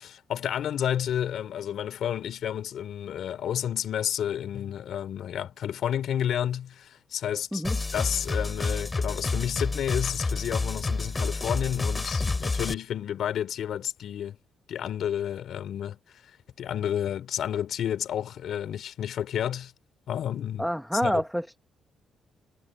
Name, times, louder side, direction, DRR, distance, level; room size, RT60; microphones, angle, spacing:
voice 1, 0.0-7.6 7.9-14.4 14.7-16.0 16.6-19.7 20.1-21.2, left 10 dB, 70° left, 5.0 m, -31 dB
sound 1, 7.6-12.7, left 3 dB, 25° left, 6.2 m, -29 dB
voice 2, 20.6-21.6, equal, ahead, 1.5 m, -27 dB
cardioid pair, 90°, 0 cm